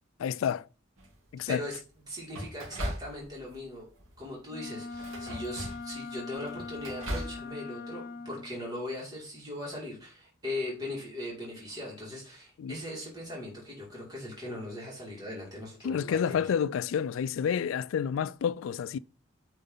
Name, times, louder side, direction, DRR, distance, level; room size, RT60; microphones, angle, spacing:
voice 1, 0.2-0.7 1.3-1.6 12.6-12.8 15.8-19.0, left 7 dB, 75° left, 0.3 m, -29 dB
sound 1, 1.0-1.4 2.3-3.6 3.9-4.3 4.9-6.0 6.3-7.4, right 1 dB, 85° right, 2.4 m, -38 dB
voice 2, 1.5-1.8 2.1-3.9 4.2-16.4, left 1 dB, 20° right, 2.7 m, -39 dB
Wind instrument woodwind instrument, 4.5-8.5, left 4 dB, 50° left, 0.7 m, -41 dB
9.1 x 3.9 x 3.9 m
head